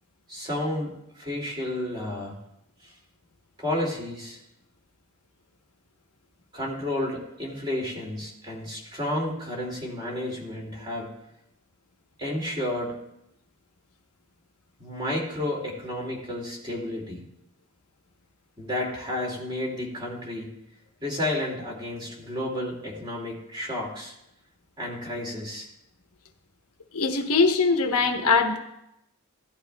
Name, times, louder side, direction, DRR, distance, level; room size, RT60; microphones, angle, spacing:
voice 1, 0.3-2.4 2.8-2.9 3.6-4.4 6.5-11.1 12.2-12.9 14.8-17.2 18.6-20.5 21.0-24.1 24.8-25.7, left 1 dB, 20° right, -2 dB, 2.5 m, -31 dB
voice 2, 26.9-28.6, left 4 dB, 80° left, 4 dB, 1.1 m, -22 dB
16.0 x 11.5 x 2.3 m, 0.83 s
head